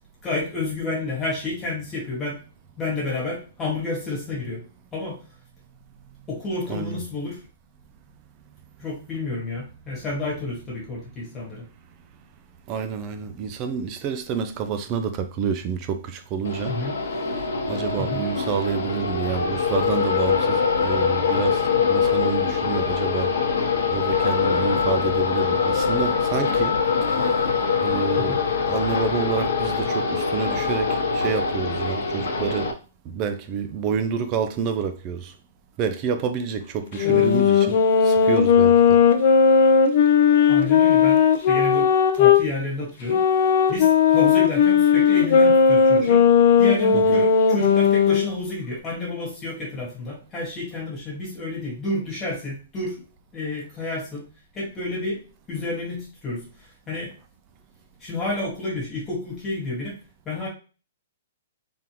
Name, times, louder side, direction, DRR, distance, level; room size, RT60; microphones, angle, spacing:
voice 1, 0.2-2.4 2.8-4.6 4.9-5.2 6.3-7.4 8.8-11.6 16.7-17.0 18.0-18.3 28.2-28.4 37.0-37.3 40.5-41.2 41.5-43.2 43.7-46.2 46.6-53.0 53.3-56.4 56.9-57.1 58.0-60.0 60.2-60.5, left 2 dB, 10° left, 1.6 m, -30 dB
voice 2, 12.7-16.8 17.1-17.2 17.7-23.3 23.9-27.5 27.8-32.8 33.0-35.3 35.8-39.0 46.9-47.2, right 6 dB, 20° right, 0.3 m, -28 dB
sound 1, 16.4-32.7, left 5 dB, 75° left, 0.9 m, -23 dB
sound 2, 36.9-42.4 43.1-48.3, left 6 dB, 40° left, 0.6 m, -17 dB
3.8 x 3.3 x 2.9 m
hypercardioid pair, 175°, 0 cm